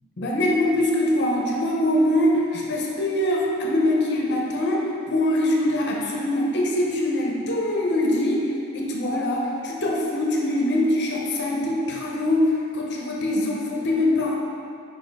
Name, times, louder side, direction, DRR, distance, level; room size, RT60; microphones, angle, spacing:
voice 1, 0.2-14.4, left 1 dB, 50° left, -2 dB, 0.8 m, -23 dB
5.3 x 4.7 x 4.6 m, 2.6 s
head